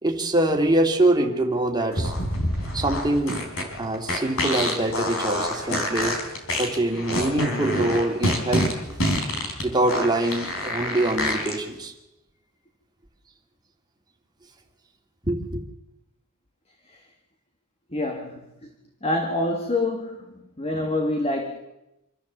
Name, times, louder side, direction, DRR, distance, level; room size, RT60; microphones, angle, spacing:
voice 1, 0.0-2.1 2.7-3.4 3.8-6.2 6.5-9.1 9.6-11.9 15.2-15.6, right 1 dB, 20° right, 2 dB, 2.5 m, -24 dB
sound 1, 1.9-11.6, left 1 dB, 65° left, 4.1 m, -26 dB
voice 2, 17.9-18.7 19.0-21.6, left 2 dB, 25° left, 4 dB, 1.8 m, -27 dB
26.0 x 14.0 x 7.4 m, 0.94 s
head